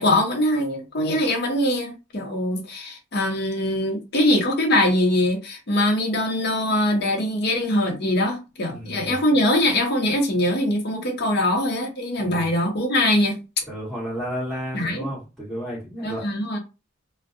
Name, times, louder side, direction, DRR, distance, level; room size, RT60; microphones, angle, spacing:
voice 1, 0.0-13.4 14.7-15.1 16.0-16.6, left 1 dB, 55° left, 0.8 m, -22 dB
voice 2, 8.7-9.2 12.2-12.5 13.7-16.2, equal, ahead, 1.5 m, -32 dB
2.6 x 2.2 x 2.5 m
head